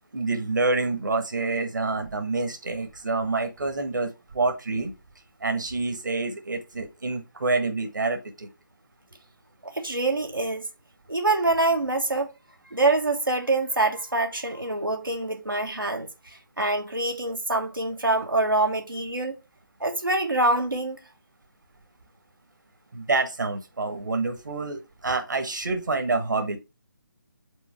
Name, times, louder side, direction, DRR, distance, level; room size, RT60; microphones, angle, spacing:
voice 1, 0.1-4.9 5.4-8.5 22.9-26.6, right 3 dB, 65° right, 1.4 m, -27 dB
voice 2, 9.6-10.7 11.1-12.3 12.7-16.1 16.6-19.3 19.8-21.0, right 2 dB, 90° right, 1.4 m, -25 dB
5.4 x 4.1 x 5.7 m
figure-of-eight pair, 150°, 11 cm